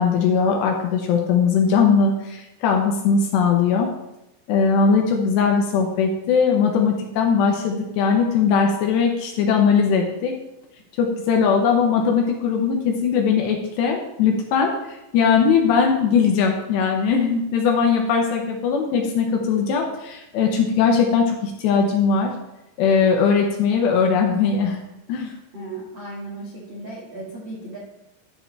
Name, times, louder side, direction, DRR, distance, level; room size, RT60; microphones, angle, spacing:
voice 1, 0.0-3.9 4.5-10.3 11.0-22.3 22.8-24.8 25.1-25.3, left 6 dB, 75° left, 2 dB, 2.8 m, -20 dB
voice 2, 25.5-27.8, right 2 dB, 75° right, -6 dB, 1.0 m, -35 dB
11.0 x 7.7 x 3.3 m, 0.92 s
omnidirectional pair, 5.7 m